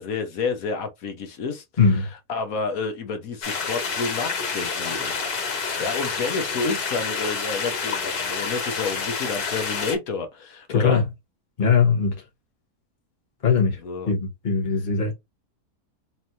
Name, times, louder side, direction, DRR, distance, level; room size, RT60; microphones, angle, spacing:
voice 1, 0.0-5.1 5.8-11.0 13.8-14.1, left 4 dB, 70° left, 1.3 m, -30 dB
sound 1, 3.4-10.0, left 5 dB, 85° left, 1.8 m, -28 dB
voice 2, 10.7-11.0 11.6-12.1 13.4-13.8 14.1-15.1, left 5 dB, 30° left, 1.3 m, -20 dB
4.3 x 3.3 x 2.7 m
omnidirectional pair, 1.6 m